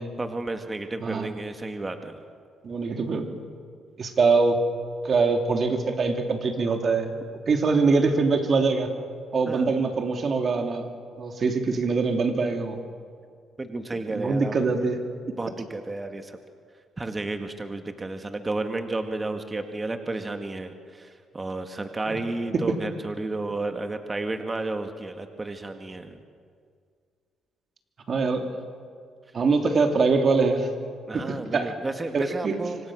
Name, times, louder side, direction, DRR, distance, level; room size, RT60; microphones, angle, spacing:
voice 1, 0.2-2.2 9.5-9.7 13.6-14.5 15.4-16.4 17.0-26.2 31.1-32.8, right 2 dB, 20° right, 6 dB, 1.8 m, -32 dB
voice 2, 2.6-3.4 4.0-4.6 5.0-7.2 7.5-8.9 9.3-10.8 11.2-12.8 14.1-15.0 22.1-22.2 22.5-22.8 28.1-28.5 29.3-30.7 31.1-31.7 32.1-32.6, right 4 dB, 50° right, 4 dB, 2.9 m, -23 dB
26.0 x 25.5 x 6.4 m, 2.1 s
cardioid pair, 90°, 0 cm